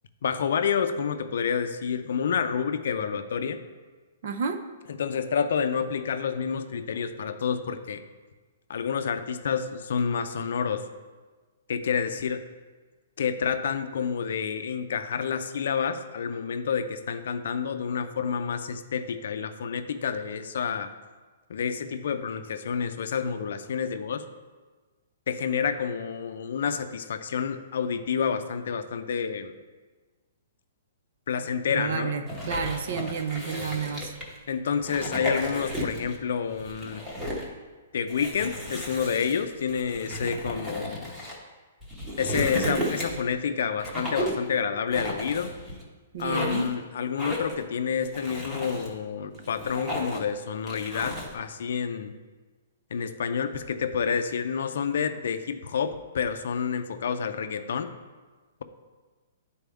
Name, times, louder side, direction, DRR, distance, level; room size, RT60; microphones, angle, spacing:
voice 1, 0.2-3.6 4.9-8.0 8.7-10.9 11.7-12.4 13.2-20.9 21.5-24.2 25.3-29.5 31.3-32.1 34.5-37.1 37.9-41.1 42.2-45.5 46.2-52.1 52.9-57.9, left 6 dB, 60° left, 8 dB, 0.5 m, -29 dB
voice 2, 4.2-4.6 31.7-34.1 46.1-46.7, right 6 dB, 45° right, 8 dB, 0.6 m, -30 dB
sound 1, 32.3-34.4 34.8-36.2 36.5-37.5 38.1-41.4 41.8-43.3 43.8-44.5 44.9-45.8 46.2-46.7 47.2-47.6 48.0-48.9 49.3-50.3 50.7-51.3, equal, 10° right, 0.9 m, -34 dB
10.5 x 4.2 x 3.5 m, 1.3 s
hypercardioid pair, 175°, 0 cm